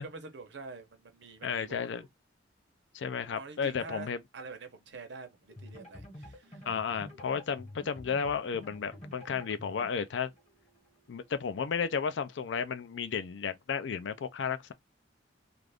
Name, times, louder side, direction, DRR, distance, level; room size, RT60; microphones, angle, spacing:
voice 1, 0.0-2.1 3.4-6.7, right 4 dB, 70° right, 0.7 m, -46 dB
voice 2, 1.4-2.0 2.9-4.2 6.7-10.3 11.1-14.7, left 6 dB, 70° left, 0.4 m, -33 dB
sound 1, 5.5-11.3, left 1 dB, 35° left, 1.1 m, -50 dB
2.5 x 2.4 x 3.3 m
head